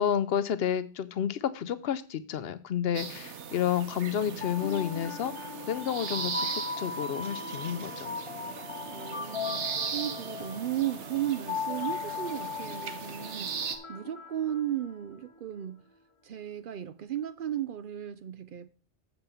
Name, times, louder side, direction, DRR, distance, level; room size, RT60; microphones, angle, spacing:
voice 1, 0.0-8.1, left 9 dB, 65° left, 0.8 m, -30 dB
sound 1, 2.9-13.8, right 6 dB, 85° right, 1.2 m, -39 dB
sound 2, 4.2-15.3, left 6 dB, 30° left, 0.7 m, -38 dB
voice 2, 8.8-15.8 16.2-18.7, right 11 dB, 60° right, 0.6 m, -35 dB
7.0 x 5.3 x 6.9 m
omnidirectional pair, 1.2 m